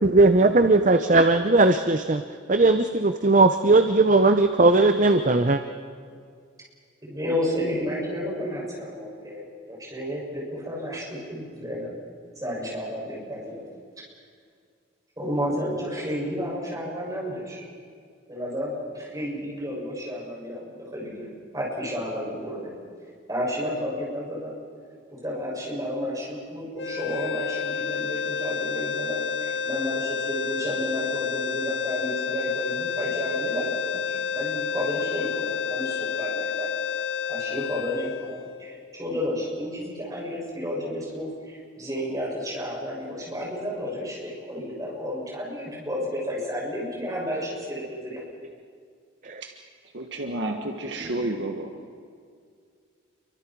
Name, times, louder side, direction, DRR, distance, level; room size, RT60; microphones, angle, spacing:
voice 1, 0.0-2.2 2.5-5.6 49.3-49.4, right 2 dB, 40° right, 8 dB, 0.7 m, -18 dB
voice 2, 7.0-11.9 12.4-13.6 15.2-17.6 18.3-21.3 21.5-22.8 23.3-24.6 25.1-36.7 37.3-48.2, equal, 20° right, -4 dB, 7.2 m, -31 dB
sound 1, 26.8-39.0, left 6 dB, 60° left, 1.0 m, -30 dB
voice 3, 49.9-52.0, right 1 dB, 65° right, 3 dB, 1.7 m, -31 dB
29.0 x 24.5 x 4.7 m, 2.1 s
head